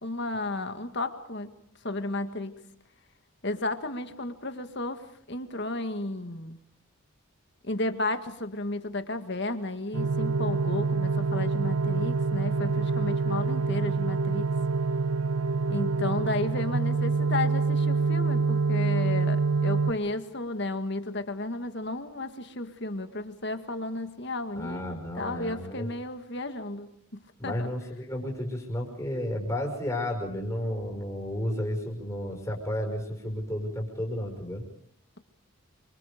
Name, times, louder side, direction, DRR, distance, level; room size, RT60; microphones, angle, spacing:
voice 1, 0.0-1.5 1.8-2.5 3.4-6.6 7.6-14.5 15.7-27.7, left 2 dB, 50° left, 8 dB, 1.9 m, -33 dB
sound 1, 9.9-19.9, right 4 dB, 75° right, 1.4 m, -26 dB
voice 2, 24.6-25.9 27.4-34.6, left 1 dB, 15° left, 1 dB, 5.5 m, -32 dB
28.0 x 25.0 x 5.2 m, 0.72 s
head